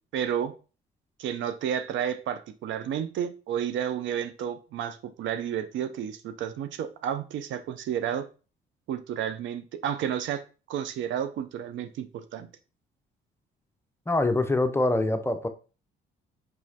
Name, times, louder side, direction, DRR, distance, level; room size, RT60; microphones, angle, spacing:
voice 1, 0.1-0.5 1.2-8.2 8.9-10.4 10.7-12.5, right 9 dB, 70° right, 0.5 m, -31 dB
voice 2, 14.1-15.5, left 2 dB, 10° left, 0.5 m, -24 dB
4.7 x 3.0 x 2.7 m
supercardioid pair, 70°, 20 cm